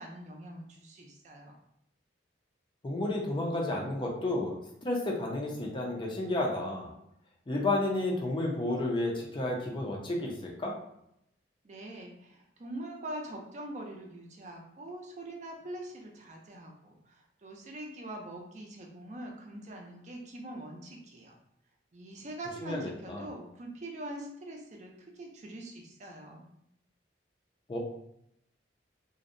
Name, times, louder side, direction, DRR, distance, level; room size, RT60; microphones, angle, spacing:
voice 1, 0.0-1.5 11.6-21.4 21.9-26.5, right 1 dB, 40° right, 1 dB, 0.4 m, -43 dB
voice 2, 2.8-4.6 4.8-6.9 7.5-10.7 22.6-23.2 27.7-27.8, left 2 dB, 25° left, -1 dB, 0.4 m, -31 dB
2.6 x 2.0 x 2.5 m, 0.78 s
head